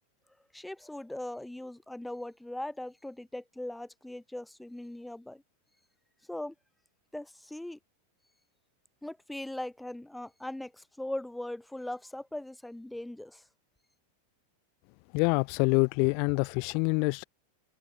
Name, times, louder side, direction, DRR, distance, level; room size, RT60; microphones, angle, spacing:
voice 1, 0.5-5.4 6.3-6.5 7.1-7.8 9.0-13.4, left 1 dB, 5° left, 4.7 m, -40 dB
voice 2, 15.1-17.2, left 37 dB, 45° left, 1.2 m, -26 dB
figure-of-eight pair, 90°, 0 cm